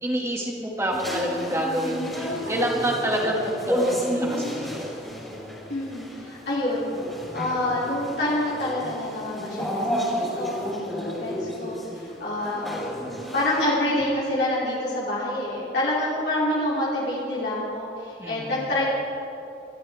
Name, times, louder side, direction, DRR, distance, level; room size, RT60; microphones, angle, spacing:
voice 1, 0.0-4.9 18.2-18.6, equal, 15° right, -1 dB, 2.2 m, -27 dB
sound 1, 0.9-13.6, equal, ahead, 3.8 m, -31 dB
voice 2, 5.7-6.9 7.3-12.7 13.3-18.9, left 1 dB, 65° left, -8 dB, 3.1 m, -27 dB
25.0 x 13.0 x 3.6 m, 2.8 s
head